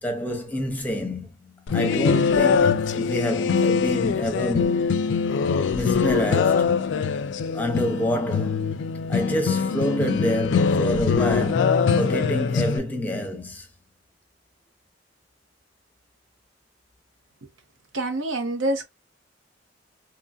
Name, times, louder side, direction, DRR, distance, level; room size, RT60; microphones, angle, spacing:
voice 1, 0.0-5.0 5.7-6.7 7.5-8.7 9.1-13.7, equal, 10° left, 0.7 m, -27 dB
sound 1, 1.7-12.8, left 5 dB, 65° left, 0.3 m, -23 dB
voice 2, 17.9-18.8, right 1 dB, 85° right, 0.8 m, -26 dB
3.0 x 2.5 x 2.3 m
head